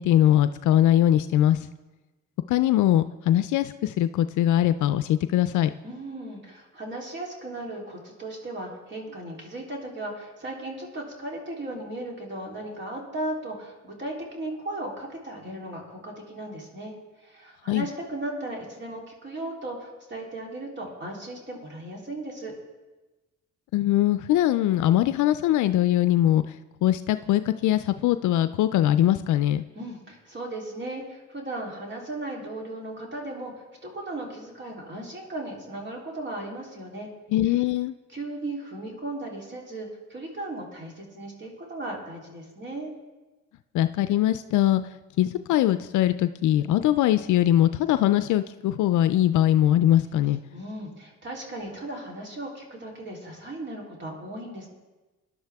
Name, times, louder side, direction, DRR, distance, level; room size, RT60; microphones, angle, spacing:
voice 1, 0.0-1.7 2.5-5.7 17.7-17.9 23.7-26.4 26.8-29.6 37.3-37.9 43.7-44.8 45.2-50.4, left 12 dB, 75° left, 11 dB, 0.5 m, -21 dB
voice 2, 5.8-16.9 17.2-22.5 29.7-33.5 33.8-37.1 38.1-42.9 50.5-54.7, right 1 dB, 35° right, -1 dB, 3.4 m, -36 dB
19.0 x 11.0 x 3.5 m, 1.2 s
cardioid pair, 90°, 30 cm